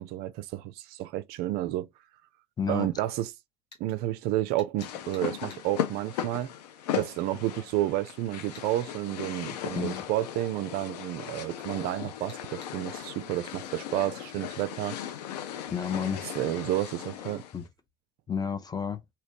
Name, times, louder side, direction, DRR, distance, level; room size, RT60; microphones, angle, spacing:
voice 1, 0.0-1.9 2.7-3.3 3.8-6.5 7.0-15.0 16.4-17.4, right 15 dB, 50° right, 0.4 m, -31 dB
voice 2, 2.6-2.9 9.7-10.0 15.7-16.2 17.5-17.7 18.3-19.0, left 7 dB, 20° left, 0.5 m, -31 dB
sound 1, 3.7-3.9 4.6-5.6 8.5-8.7 12.3-12.8, left 3 dB, 85° left, 1.2 m, -51 dB
sound 2, 4.8-17.6, left 10 dB, 70° left, 0.5 m, -37 dB
3.1 x 2.8 x 2.8 m
hypercardioid pair, 70°, 21 cm